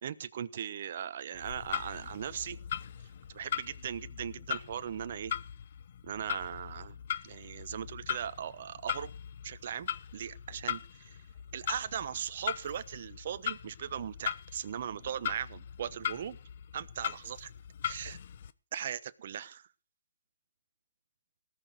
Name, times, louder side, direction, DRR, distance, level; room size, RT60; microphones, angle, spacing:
voice 1, 0.0-2.6 3.3-5.3 6.0-7.0 7.2-9.1 9.4-11.2 11.5-16.4 16.7-17.5 17.8-18.2 18.7-19.6, right 9 dB, 55° right, 13 dB, 1.1 m, -39 dB
Clock, 1.3-18.5, left 9 dB, 55° left, 0.9 m, -40 dB
18.5 x 6.3 x 6.6 m, 0.35 s
hypercardioid pair, 155°, 0 cm